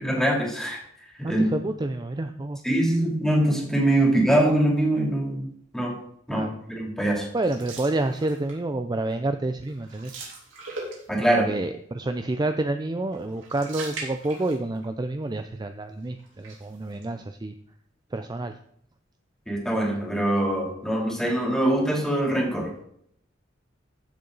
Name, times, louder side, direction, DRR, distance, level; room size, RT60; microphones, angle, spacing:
voice 1, 0.0-0.8 1.3-1.4 2.6-5.5 5.7-6.0 6.3-7.3 11.1-11.5 19.5-22.7, right 1 dB, 5° left, -1 dB, 2.9 m, -23 dB
voice 2, 1.2-2.6 6.3-6.5 7.3-10.1 11.3-17.5 18.1-18.5, right 2 dB, 20° right, 8 dB, 0.5 m, -28 dB
sound 1, 7.4-8.7 9.1-9.3 9.6-11.4 13.1-14.9 15.2-15.3 16.2-17.0, right 3 dB, 80° right, 3.4 m, -40 dB
14.5 x 6.9 x 4.0 m, 0.69 s
head